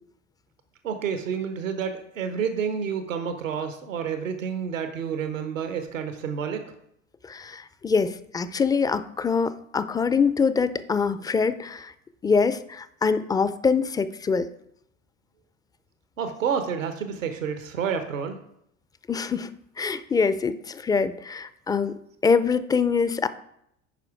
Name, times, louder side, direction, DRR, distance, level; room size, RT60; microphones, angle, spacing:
voice 1, 0.8-6.7 16.2-18.4, right 7 dB, 85° right, 7 dB, 1.0 m, -29 dB
voice 2, 7.2-11.9 12.2-14.5 19.1-19.5 19.8-23.3, left 5 dB, 10° left, 14 dB, 0.4 m, -24 dB
10.0 x 4.9 x 4.7 m, 0.76 s
hypercardioid pair, 80°, 38 cm